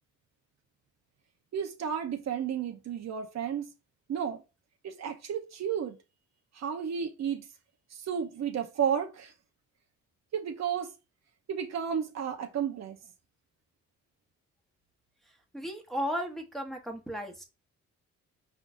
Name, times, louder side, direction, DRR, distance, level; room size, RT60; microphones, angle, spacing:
voice 1, 1.5-3.6 4.1-4.4 4.8-6.0 6.5-7.4 7.9-9.3 10.3-10.9 11.5-13.0, right 8 dB, 60° right, 1.0 m, -32 dB
voice 2, 15.5-17.4, equal, ahead, 1.3 m, -35 dB
4.9 x 3.9 x 2.6 m
cardioid pair, 90°, 30 cm